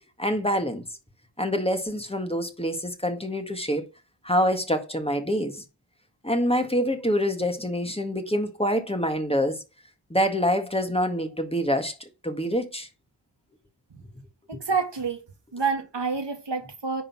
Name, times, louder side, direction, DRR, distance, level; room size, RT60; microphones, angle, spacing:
voice 1, 0.2-0.8 1.4-3.9 4.2-5.6 6.2-9.6 10.1-11.9 12.2-12.9, equal, 15° left, 1.7 m, -26 dB
voice 2, 14.5-15.2 15.5-17.0, right 5 dB, 85° right, 1.8 m, -28 dB
10.0 x 3.8 x 6.0 m
wide cardioid pair, 45°, 42 cm